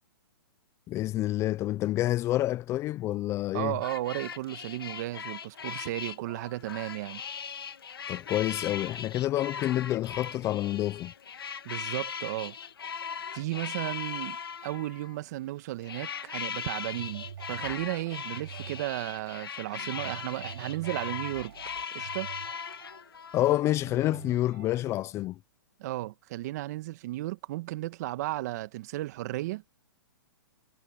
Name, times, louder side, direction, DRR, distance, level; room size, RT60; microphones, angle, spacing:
voice 1, 0.9-3.7 8.1-11.1 23.3-25.4, left 14 dB, 25° left, 0.6 m, -28 dB
voice 2, 3.5-7.2 11.6-12.6 13.3-21.5 21.9-22.3 25.8-29.6, right 17 dB, 50° right, 1.7 m, -34 dB
sound 1, 3.8-15.2 15.8-23.6, left 7 dB, 85° left, 2.2 m, -39 dB
sound 2, 16.9-24.8, right 9 dB, 70° right, 7.6 m, -46 dB
hypercardioid pair, 135°, 12 cm